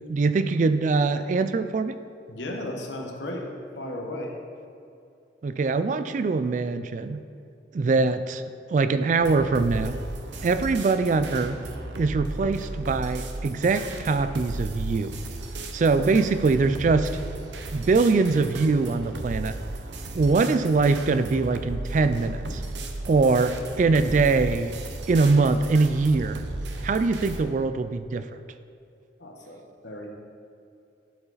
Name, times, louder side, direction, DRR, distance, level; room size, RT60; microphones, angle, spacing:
voice 1, 0.1-2.0 5.4-7.2 7.7-8.4 8.7-10.0 10.4-11.6 12.0-15.2 15.7-17.1 17.7-19.5 20.1-22.6 23.1-24.7 25.1-26.4 26.8-28.3, right 4 dB, 45° right, 11 dB, 0.3 m, -23 dB
voice 2, 2.3-3.5 3.7-4.4 15.7-15.9 29.2-30.1, left 1 dB, 80° left, 1 dB, 1.1 m, -35 dB
sound 1, 9.2-27.4, right 2 dB, 80° right, 0.7 m, -35 dB
11.5 x 4.8 x 4.0 m, 2.6 s
head